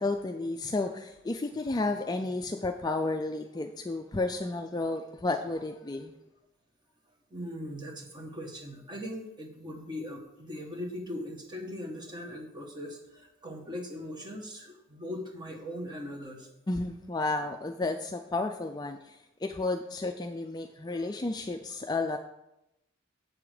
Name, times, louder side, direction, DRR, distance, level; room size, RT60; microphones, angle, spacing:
voice 1, 0.0-6.1 16.7-22.2, left 2 dB, 20° left, 5 dB, 0.3 m, -32 dB
voice 2, 7.3-16.5 20.9-21.0, left 1 dB, 20° right, 2 dB, 1.2 m, -40 dB
7.7 x 7.2 x 4.9 m, 0.87 s
head